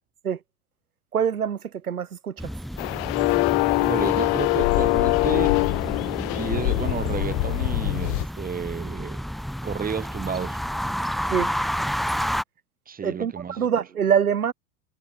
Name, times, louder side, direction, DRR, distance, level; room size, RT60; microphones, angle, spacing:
voice 1, 1.1-2.5 11.3-11.5 13.0-14.5, right 8 dB, 80° right, 3.2 m, -25 dB
sound 1, 2.4-12.4, equal, ahead, 1.4 m, -31 dB
sound 2, 2.8-8.2, left 34 dB, 45° left, 1.2 m, -23 dB
voice 2, 3.8-5.6 6.1-9.2 9.6-10.6 12.9-13.7, right 6 dB, 20° right, 6.6 m, -32 dB
hypercardioid pair, 100°, 44 cm